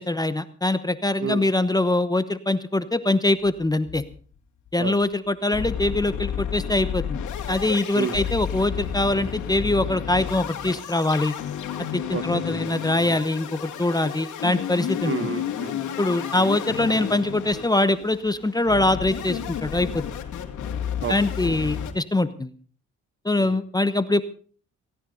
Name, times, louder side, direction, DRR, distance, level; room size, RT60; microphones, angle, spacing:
voice 1, 0.0-4.0 4.7-7.2 7.5-11.3 11.9-15.3 16.0-20.0 21.1-22.5 23.2-24.2, left 2 dB, 15° left, 12 dB, 1.0 m, -23 dB
sound 1, 3.5-4.3 4.7-4.8 5.0-5.1 5.5-21.9, left 9 dB, 75° left, 2.6 m, -32 dB
voice 2, 15.0-15.7 16.4-16.5 21.0-21.1 23.4-23.5, right 6 dB, 45° right, 13 dB, 1.4 m, -29 dB
17.0 x 17.0 x 4.0 m, 0.43 s
cardioid pair, 90°, 30 cm